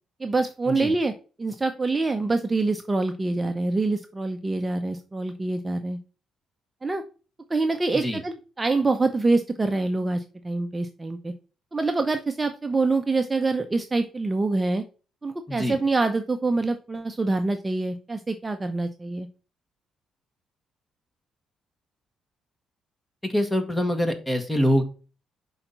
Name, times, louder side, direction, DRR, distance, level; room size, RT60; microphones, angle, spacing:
voice 1, 0.2-1.1 1.4-6.0 6.8-7.0 7.5-11.3 11.7-14.8 15.2-19.3, right 3 dB, 20° right, 7 dB, 0.7 m, -25 dB
voice 2, 15.5-15.8 23.2-24.8, equal, 10° left, 7 dB, 1.5 m, -24 dB
5.8 x 4.0 x 5.6 m, 0.35 s
cardioid pair, 90°, 0 cm